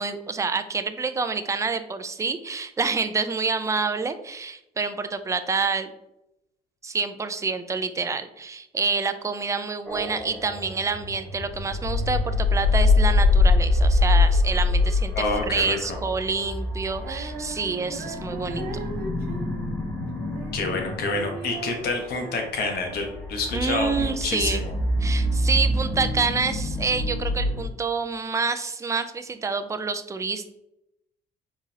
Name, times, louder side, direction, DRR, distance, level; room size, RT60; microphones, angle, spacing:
voice 1, 0.0-5.9 6.8-15.1 15.4-18.6 23.5-24.6 25.0-30.5, right 4 dB, 20° right, 10 dB, 0.4 m, -27 dB
sound 1, 9.9-27.7, left 2 dB, 5° left, 1.1 m, -25 dB
voice 2, 15.1-16.0 20.5-24.7, left 3 dB, 70° left, 3 dB, 1.1 m, -28 dB
Female singing, 16.9-23.4, right 4 dB, 65° right, 0.8 m, -38 dB
4.7 x 3.9 x 2.8 m, 0.85 s
cardioid pair, 110°, 17 cm